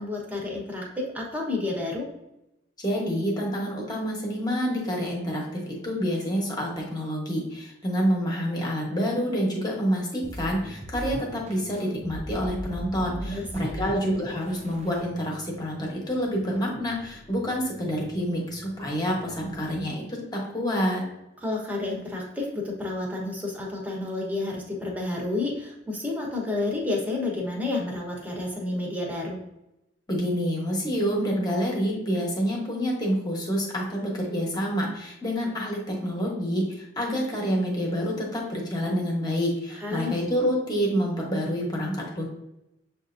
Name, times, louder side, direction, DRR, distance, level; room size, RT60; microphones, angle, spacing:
voice 1, 0.0-2.1 13.2-13.9 21.4-29.4 39.8-40.2, left 2 dB, 10° right, -2 dB, 1.0 m, -30 dB
voice 2, 2.8-21.0 30.1-42.2, equal, 20° left, -2 dB, 1.0 m, -28 dB
sound 1, 10.2-19.9, right 1 dB, 35° right, 0.4 m, -41 dB
6.8 x 2.6 x 2.5 m, 0.88 s
head